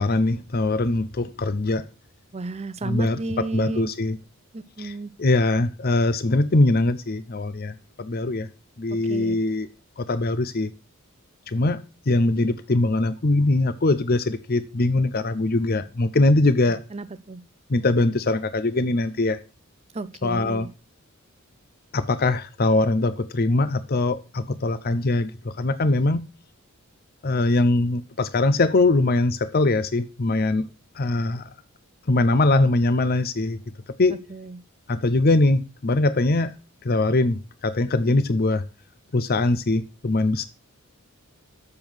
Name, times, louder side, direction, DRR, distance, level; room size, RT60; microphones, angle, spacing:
voice 1, 0.0-1.8 2.8-4.2 4.8-4.9 5.2-8.5 8.8-9.7 10.0-10.7 11.5-11.8 12.1-16.8 17.7-19.4 20.2-20.7 21.9-26.2 27.2-30.7 31.0-31.5 32.1-33.6 34.0-34.2 34.9-36.5 36.8-38.6 39.1-40.5, left 2 dB, 45° left, 0.6 m, -22 dB
voice 2, 2.3-3.9 4.5-5.1 8.9-9.4 16.9-17.4 19.9-20.7 34.3-34.6, right 3 dB, 30° right, 0.6 m, -33 dB
7.3 x 7.0 x 6.1 m
head